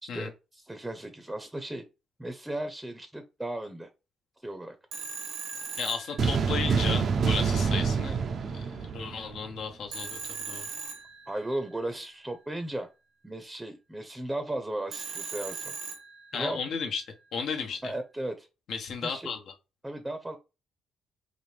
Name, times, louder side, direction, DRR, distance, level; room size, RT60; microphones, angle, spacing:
voice 1, 0.0-1.8 2.2-3.9 4.4-4.8 11.3-12.9 13.2-15.7 16.3-16.6 17.8-18.5 19.0-19.3 19.8-20.4, right 1 dB, 10° right, 8 dB, 0.6 m, -36 dB
Telephone, 4.9-6.8 9.9-11.7 14.9-16.6, right 6 dB, 90° right, 0.9 m, -39 dB
voice 2, 5.8-10.7 16.3-17.0 17.3-17.9 18.7-19.4, left 5 dB, 70° left, 3 dB, 1.0 m, -34 dB
sound 1, 6.2-9.6, right 5 dB, 55° right, 0.4 m, -27 dB
4.2 x 2.6 x 3.3 m, 0.28 s
cardioid pair, 90°, 0 cm